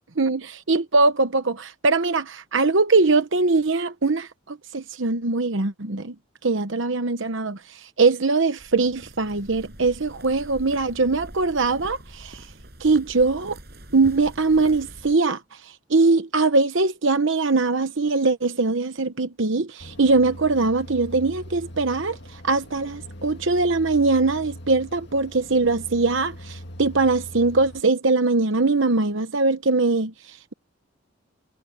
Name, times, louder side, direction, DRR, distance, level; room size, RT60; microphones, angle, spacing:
voice 1, 0.2-6.1 6.4-12.4 12.8-13.6 13.9-15.4 15.9-22.2 22.4-30.1, right 3 dB, 65° right, 1.0 m, -21 dB
sound 1, 8.6-15.2, right 1 dB, 50° right, 6.4 m, -44 dB
sound 2, 19.8-27.8, equal, 55° left, 2.2 m, -41 dB
head